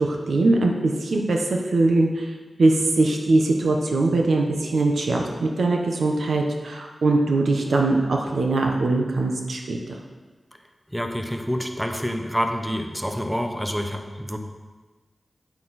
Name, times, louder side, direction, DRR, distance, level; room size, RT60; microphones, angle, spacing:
voice 1, 0.0-2.3 2.6-9.8, right 2 dB, 90° right, 2 dB, 1.1 m, -21 dB
voice 2, 10.9-14.4, equal, ahead, 4 dB, 0.9 m, -27 dB
9.0 x 8.7 x 4.3 m, 1.3 s
wide cardioid pair, 90°, 0 cm